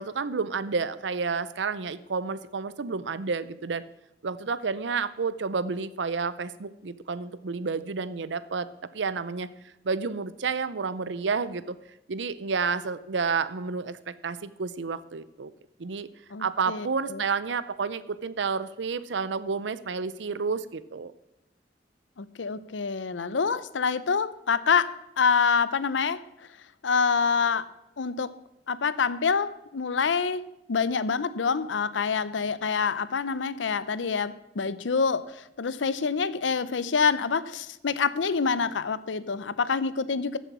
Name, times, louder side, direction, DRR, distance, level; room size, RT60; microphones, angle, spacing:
voice 1, 0.0-3.8 4.2-8.7 8.9-9.5 9.8-11.8 12.1-15.5 15.8-16.1 16.4-21.1, right 5 dB, 75° right, 15 dB, 0.6 m, -30 dB
voice 2, 16.3-17.2 22.2-24.9 25.2-26.2 26.8-27.7 28.0-28.3 28.7-40.4, left 5 dB, 90° left, 16 dB, 0.6 m, -26 dB
14.0 x 7.1 x 6.1 m, 0.90 s
head